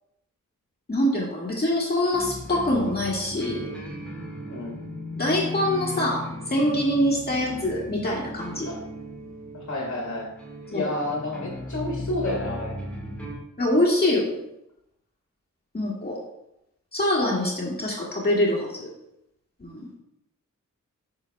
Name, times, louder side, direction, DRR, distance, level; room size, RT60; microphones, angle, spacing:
voice 1, 0.9-3.6 5.1-8.7 10.7-10.9 13.6-14.4 15.7-16.2 16.9-18.9 19.6-19.8, left 1 dB, 30° left, -5 dB, 2.0 m, -24 dB
sound 1, 2.1-13.3, left 1 dB, 5° left, 1.7 m, -36 dB
voice 2, 4.4-4.8 8.6-8.8 9.5-10.3 10.7-12.8, left 1 dB, 50° left, -2 dB, 1.6 m, -30 dB
10.5 x 6.0 x 2.3 m, 0.84 s
wide cardioid pair, 120°, 31 cm